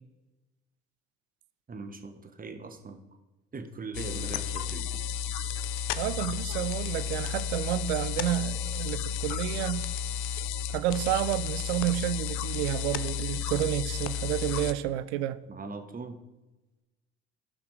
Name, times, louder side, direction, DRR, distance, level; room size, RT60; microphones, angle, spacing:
voice 1, 1.7-3.0 3.5-5.0 15.5-16.2, right 4 dB, 25° right, 1.1 m, -40 dB
sound 1, 3.9-14.7, left 7 dB, 65° left, 0.6 m, -32 dB
voice 2, 6.0-9.9 10.7-15.4, right 13 dB, 75° right, 0.5 m, -30 dB
15.0 x 5.7 x 3.2 m
hypercardioid pair, 55°, 33 cm